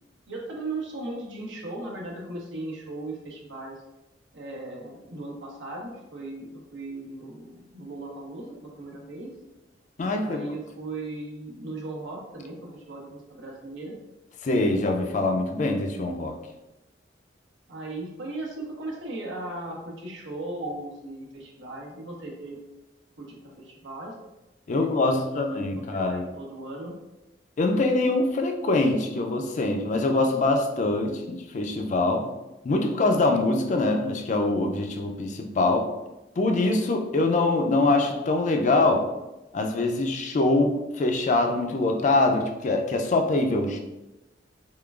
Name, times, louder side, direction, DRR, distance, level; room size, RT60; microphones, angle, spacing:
voice 1, 0.3-3.8 4.3-9.3 10.2-14.0 17.7-22.6 23.2-24.1 24.7-26.9, right 2 dB, 90° right, -2 dB, 0.9 m, -37 dB
voice 2, 10.0-10.4 14.4-16.4 24.7-26.3 27.6-32.3 32.6-35.9 36.4-39.1 39.5-43.8, left 2 dB, 40° left, 4 dB, 0.4 m, -24 dB
3.6 x 3.2 x 2.4 m, 0.98 s
head